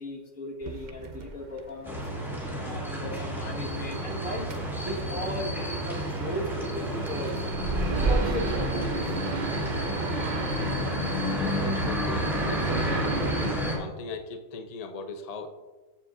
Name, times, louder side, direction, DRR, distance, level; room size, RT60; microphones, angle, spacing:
voice 1, 0.0-2.0 2.5-4.5 4.7-7.4 7.9-9.2, left 1 dB, 75° left, -3 dB, 2.3 m, -36 dB
sound 1, 0.6-13.6, right 4 dB, 40° right, 0.7 m, -33 dB
sound 2, 1.8-13.8, equal, ahead, 2.5 m, -31 dB
voice 2, 11.6-12.7 13.1-13.4 13.7-15.5, left 4 dB, 35° left, 5 dB, 0.7 m, -39 dB
14.5 x 7.4 x 2.7 m, 1.2 s
omnidirectional pair, 1.4 m